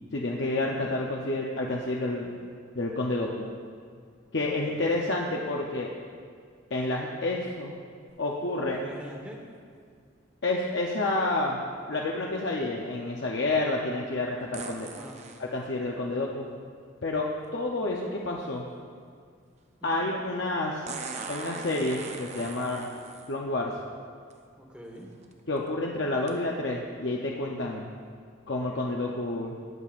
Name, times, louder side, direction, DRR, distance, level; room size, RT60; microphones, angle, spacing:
voice 1, 0.1-2.3 2.7-3.5 4.3-5.9 6.7-7.7 8.2-8.8 10.4-11.6 11.9-14.9 15.4-16.5 17.0-18.7 19.8-20.8 21.3-22.9 23.3-23.7 25.5-27.9 28.5-29.6, left 2 dB, 55° left, -1 dB, 0.7 m, -29 dB
sound 1, 8.1-8.2 14.5-15.4 17.4-17.5 20.9-23.3 24.3-24.4 25.0-25.3 26.3-26.4, right 4 dB, 35° right, 0.6 m, -40 dB
voice 2, 8.7-9.4 14.8-15.2 19.8-20.1 24.6-25.1, equal, 5° right, -1 dB, 1.2 m, -44 dB
20.0 x 7.5 x 2.5 m, 2.1 s
head